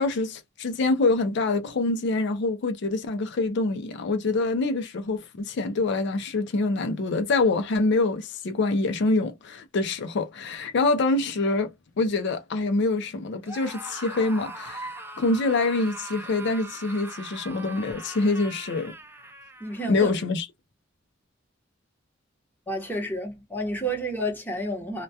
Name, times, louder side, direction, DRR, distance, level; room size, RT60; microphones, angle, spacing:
voice 1, 0.0-18.9 19.9-20.5, left 3 dB, 60° left, 0.4 m, -25 dB
Screaming, 13.4-19.9, right 2 dB, 10° right, 0.3 m, -40 dB
voice 2, 19.6-20.1 22.7-25.0, right 1 dB, 10° left, 0.8 m, -30 dB
2.2 x 2.1 x 2.6 m
head